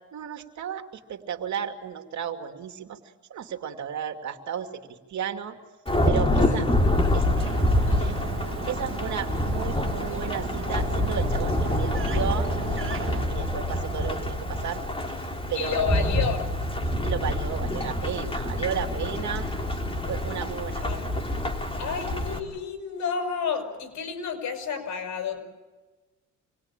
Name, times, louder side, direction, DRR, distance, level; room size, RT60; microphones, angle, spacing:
voice 1, 0.1-0.8 1.1-3.0 3.3-5.6 6.0-6.6 7.1-7.2 8.0-8.1 8.7-15.2 15.5-16.0 17.0-19.5 20.1-20.8, right 8 dB, 70° right, 5 dB, 2.6 m, -33 dB
Thunderstorm / Rain, 5.9-22.4, left 1 dB, 20° left, 3.7 m, -26 dB
voice 2, 6.4-7.3 7.8-8.2 15.5-16.5 20.8-21.2 21.8-25.4, left 6 dB, 75° left, 6 dB, 6.0 m, -31 dB
sound 1, 7.4-13.3, right 7 dB, 45° right, 1.4 m, -37 dB
27.0 x 21.0 x 9.0 m, 1.2 s
cardioid pair, 90°, 30 cm